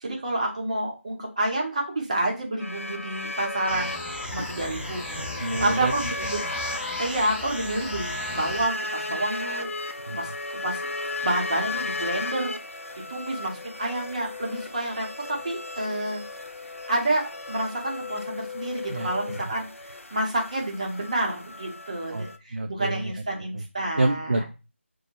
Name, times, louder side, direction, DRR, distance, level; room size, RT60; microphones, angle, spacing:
voice 1, 0.0-3.9 4.3-5.0 5.6-6.4 7.0-9.7 10.0-10.8 11.2-12.5 13.1-16.2 16.9-19.7 20.1-22.3 22.7-24.4, right 1 dB, 30° right, -1 dB, 0.8 m, -29 dB
sound 1, 2.6-22.4, left 3 dB, 80° left, 0.4 m, -35 dB
sound 2, 3.7-8.7, left 1 dB, 5° left, 0.9 m, -36 dB
voice 2, 4.9-5.9 10.1-10.2 18.9-19.1 22.1-23.6 24.0-24.4, right 2 dB, 55° right, 4 dB, 0.3 m, -29 dB
2.1 x 2.1 x 2.8 m, 0.30 s
figure-of-eight pair, 165°, 7 cm